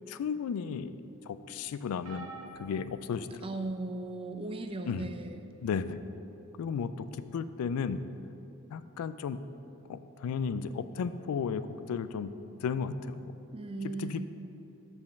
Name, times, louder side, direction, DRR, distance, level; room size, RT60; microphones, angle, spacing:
voice 1, 0.1-0.9 1.3-2.3 2.6-3.3 4.9-5.1 5.6-6.0 6.6-7.1 7.3-8.0 8.7-9.4 9.9-12.3 12.6-13.3 14.0-14.3, left 6 dB, 80° left, 14 dB, 0.3 m, -34 dB
sound 1, 2.0-3.8 4.6-4.8 6.1-6.2, right 3 dB, 80° right, 1.2 m, -48 dB
voice 2, 3.4-5.5 13.5-14.3, right 2 dB, 25° right, 7 dB, 0.3 m, -37 dB
5.4 x 5.1 x 6.4 m, 2.9 s
head